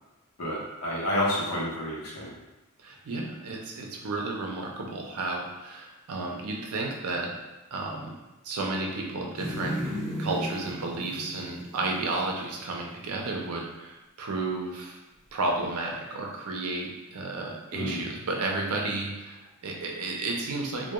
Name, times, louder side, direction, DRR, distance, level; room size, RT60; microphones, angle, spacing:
voice 1, 0.4-2.4 17.7-18.0, left 1 dB, 80° left, -4 dB, 0.7 m, -29 dB
voice 2, 2.8-7.3 7.7-8.2 8.4-15.0 15.3-20.9, right 2 dB, 90° right, 0 dB, 0.5 m, -32 dB
sound 1, 9.3-12.7 13.1-13.2, equal, ahead, 1.0 m, -35 dB
2.2 x 2.2 x 2.9 m, 1.1 s
head